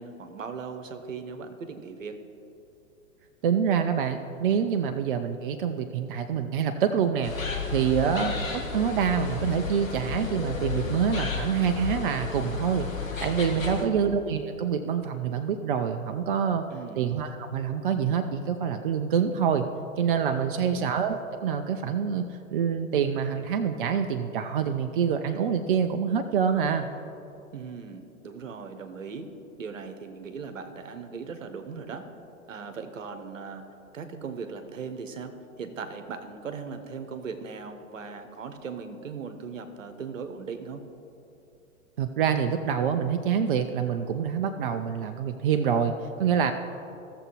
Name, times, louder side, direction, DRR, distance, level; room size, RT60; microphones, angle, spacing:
voice 1, 0.0-2.2 8.0-8.2 13.6-14.0 16.7-17.0 20.4-20.8 27.5-29.3 29.6-32.1 32.5-33.6 33.9-40.8, right 5 dB, 65° right, 8 dB, 1.0 m, -38 dB
voice 2, 3.4-7.3 7.7-12.9 13.2-16.6 17.0-19.7 20.0-26.9 42.0-46.5, right 7 dB, 40° right, 7 dB, 0.4 m, -26 dB
sound 1, 7.2-13.8, left 5 dB, 75° left, 1.4 m, -32 dB
16.0 x 6.9 x 3.0 m, 2.7 s
figure-of-eight pair, 105°, 41 cm